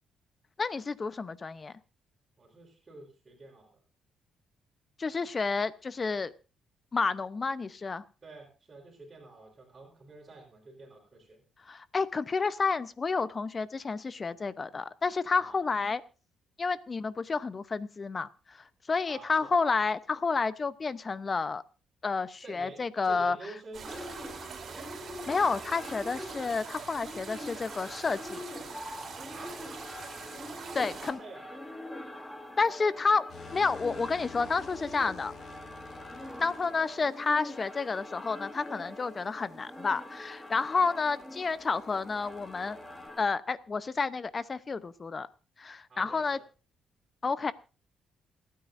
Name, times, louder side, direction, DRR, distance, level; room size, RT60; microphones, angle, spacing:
voice 1, 0.6-1.7 5.0-6.3 6.9-8.0 11.7-16.0 16.6-21.6 22.0-23.4 25.3-28.4 30.7-31.2 32.6-35.3 36.4-42.8 43.2-45.3 45.6-46.4 47.2-47.5, left 4 dB, 35° left, 16 dB, 0.8 m, -30 dB
voice 2, 2.4-3.8 8.2-11.4 15.3-15.6 19.1-19.5 22.4-24.2 29.3-29.6 30.7-31.6 45.9-46.4, right 2 dB, 35° right, -5 dB, 4.5 m, -48 dB
sound 1, 23.7-31.1, right 6 dB, 55° right, 3.4 m, -44 dB
sound 2, 23.9-43.3, left 1 dB, 5° left, 1.8 m, -44 dB
sound 3, 33.3-37.2 39.4-43.1, left 6 dB, 55° left, 2.7 m, -51 dB
28.5 x 9.5 x 2.6 m, 0.32 s
cardioid pair, 90°, 0 cm